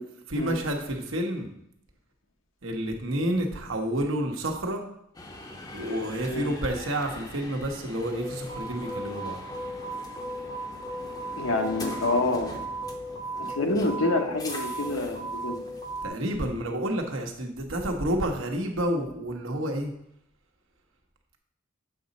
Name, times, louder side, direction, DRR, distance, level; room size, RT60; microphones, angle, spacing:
voice 1, 0.3-1.5 2.6-4.8 5.7-9.4 16.0-19.9, right 1 dB, 80° right, 3 dB, 1.1 m, -29 dB
sound 1, 5.1-16.1, right 1 dB, 20° left, 0.6 m, -36 dB
voice 2, 11.4-12.5 13.5-15.6, left 2 dB, 80° left, 4 dB, 1.0 m, -27 dB
7.6 x 4.0 x 5.3 m, 0.75 s
head